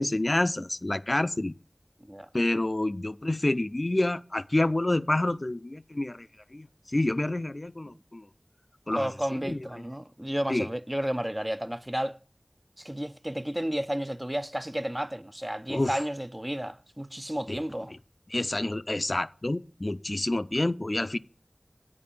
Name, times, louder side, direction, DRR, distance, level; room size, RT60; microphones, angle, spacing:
voice 1, 0.0-1.5 2.3-6.3 6.5-6.7 6.9-8.2 8.9-9.1 9.4-9.6 10.5-10.7 15.7-16.0 17.5-17.6 18.3-21.2, left 1 dB, 55° left, 0.4 m, -28 dB
voice 2, 8.9-12.2 12.8-17.9, equal, 25° right, 0.5 m, -32 dB
8.5 x 5.0 x 7.1 m
wide cardioid pair, 40°, 0 cm